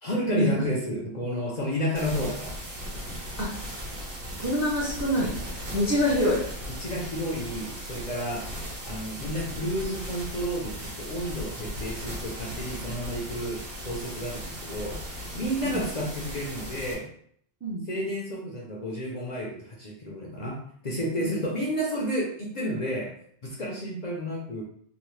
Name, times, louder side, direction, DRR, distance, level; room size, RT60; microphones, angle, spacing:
voice 1, 0.0-2.5 6.8-8.5 8.8-15.0 15.3-17.1 17.9-23.1 23.4-24.6, equal, 50° left, -3 dB, 0.6 m, -31 dB
sound 1, 1.9-16.9, equal, 55° right, 1.0 m, -37 dB
voice 2, 4.4-5.4 5.7-6.4 15.6-15.8 17.6-17.8 21.2-21.3, equal, 20° right, -5 dB, 0.4 m, -25 dB
2.8 x 2.0 x 3.1 m, 0.63 s
omnidirectional pair, 1.1 m